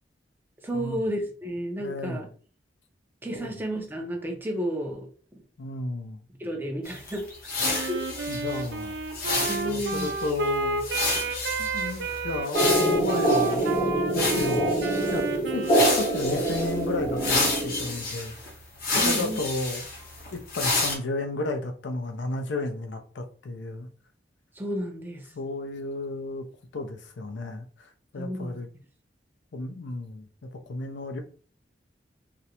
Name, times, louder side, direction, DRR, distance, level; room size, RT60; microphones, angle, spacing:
voice 1, 0.6-2.3 3.2-5.1 6.4-7.3 7.7-8.1 9.5-10.1 18.9-19.4 24.6-25.3 28.1-28.6, equal, 10° right, 0.5 m, -31 dB
voice 2, 1.8-2.3 3.3-3.5 5.6-6.2 8.3-8.9 9.6-10.8 11.6-14.8 15.1-15.7 15.9-18.5 18.9-19.9 20.3-23.9 25.3-26.4 26.7-28.7 29.5-31.2, left 2 dB, 75° left, 0.5 m, -33 dB
sound 1, 6.9-13.7 14.1-15.2 15.6-16.8 17.2-20.9, left 3 dB, 55° left, 0.8 m, -30 dB
Wind instrument woodwind instrument, 7.6-16.5, right 3 dB, 70° right, 0.4 m, -31 dB
sound 2, 12.5-18.1, right 1 dB, 25° left, 0.7 m, -25 dB
2.4 x 2.0 x 2.8 m
head